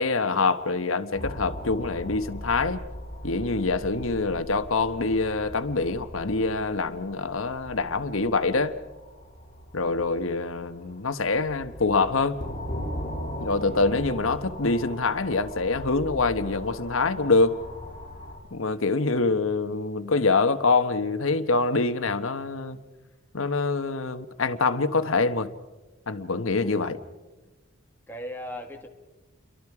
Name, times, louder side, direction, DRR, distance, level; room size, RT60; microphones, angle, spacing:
voice 1, 0.0-2.8 3.2-8.8 9.7-12.4 13.4-17.6 18.5-22.8 23.3-25.5 26.1-27.0, left 3 dB, 85° left, 1.2 m, -25 dB
sound 1, 1.1-18.4, equal, 40° left, 6.6 m, -39 dB
voice 2, 26.5-27.0 28.1-28.9, equal, 10° left, 1.9 m, -40 dB
29.5 x 23.5 x 4.9 m
head